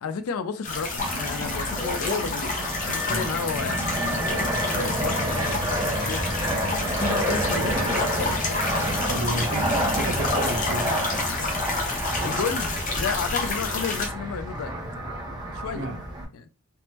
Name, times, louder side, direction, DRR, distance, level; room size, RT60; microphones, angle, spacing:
voice 1, 0.0-2.6 2.9-3.8 4.2-6.3 6.7-9.0 12.2-14.8 15.5-15.9 16.3-16.5, left 6 dB, 75° left, 0.4 m, -32 dB
sound 1, 0.6-14.1, left 3 dB, 35° left, 0.6 m, -29 dB
Fixed-wing aircraft airplane, 1.0-16.2, right 1 dB, 20° right, 0.5 m, -29 dB
Human voice, 2.0-9.3, left 1 dB, 60° left, 1.3 m, -46 dB
voice 2, 9.1-10.9 15.7-16.0, right 1 dB, 60° right, 0.6 m, -31 dB
3.4 x 2.0 x 2.8 m
head